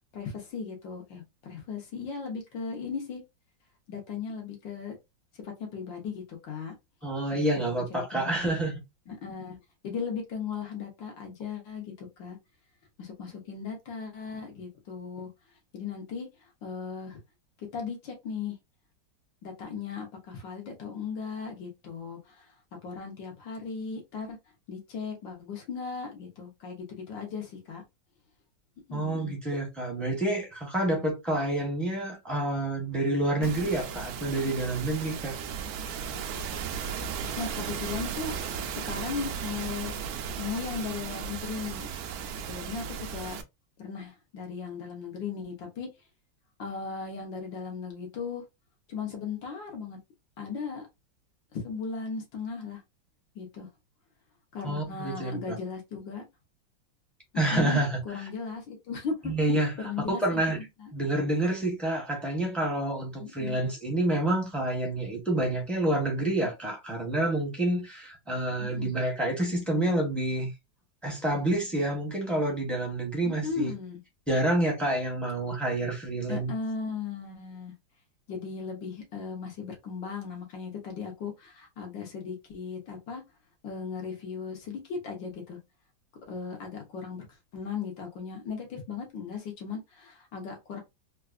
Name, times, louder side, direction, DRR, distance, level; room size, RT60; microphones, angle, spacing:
voice 1, 0.1-3.2 3.9-5.0 5.4-6.7 7.3-8.6 9.1-9.6 9.8-12.4 13.0-15.3 15.7-16.3 16.6-17.2 17.7-18.6 19.4-22.3 22.8-24.4 24.7-27.8 28.9-29.4 33.4-33.5 37.4-38.3 38.7-39.9 40.4-41.9 42.4-43.4 43.8-45.9 46.6-48.4 48.9-50.0 50.4-50.9 51.5-52.8 53.4-53.7 54.5-56.2 57.3-59.3 59.8-60.9 63.2-63.6 68.6-68.8 73.2-74.0 76.3-77.7 78.3-83.2 83.6-85.6 86.3-87.3 87.5-90.8, left 5 dB, 75° left, 1.7 m, -37 dB
voice 2, 7.0-8.7 28.9-35.4 54.6-55.6 57.3-58.0 59.2-60.6 60.9-70.5 71.0-73.7 74.3-76.5, right 1 dB, ahead, 0.6 m, -28 dB
sound 1, 33.4-43.4, right 7 dB, 75° right, 0.8 m, -36 dB
3.9 x 2.4 x 2.4 m
omnidirectional pair, 2.0 m